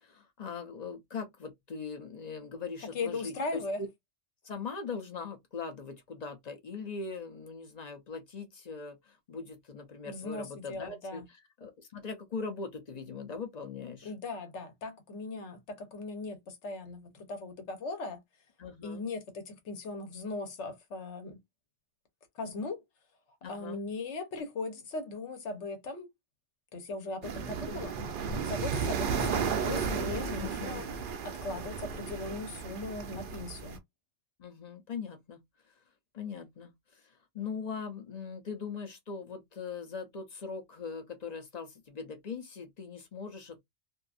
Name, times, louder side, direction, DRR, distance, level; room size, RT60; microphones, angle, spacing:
voice 1, 0.0-3.6 4.4-11.2 11.6-14.1 18.6-19.0 23.4-23.8 30.3-30.8 34.4-35.4 36.1-36.7 37.3-43.6, left 5 dB, 45° left, 0.7 m, -40 dB
voice 2, 2.9-3.8 10.0-11.3 14.0-18.2 18.8-21.4 22.3-22.8 23.4-26.1 26.7-30.9 31.2-33.8, left 3 dB, 70° left, 1.2 m, -38 dB
sound 1, 27.2-33.8, right 6 dB, 55° right, 0.6 m, -34 dB
2.6 x 2.5 x 2.4 m
omnidirectional pair, 1.3 m